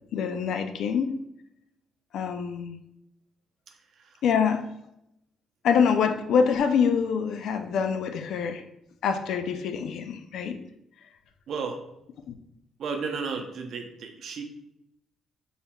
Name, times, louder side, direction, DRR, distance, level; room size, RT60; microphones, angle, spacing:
voice 1, 0.1-1.2 2.1-2.8 4.2-4.7 5.6-8.6 9.0-10.6 12.3-12.4, left 6 dB, 75° left, 8 dB, 0.4 m, -25 dB
voice 2, 3.7-4.2 11.5-11.8 12.8-14.4, right 5 dB, 65° right, 3 dB, 0.6 m, -34 dB
4.4 x 3.4 x 2.2 m, 0.83 s
cardioid pair, 90°, 0 cm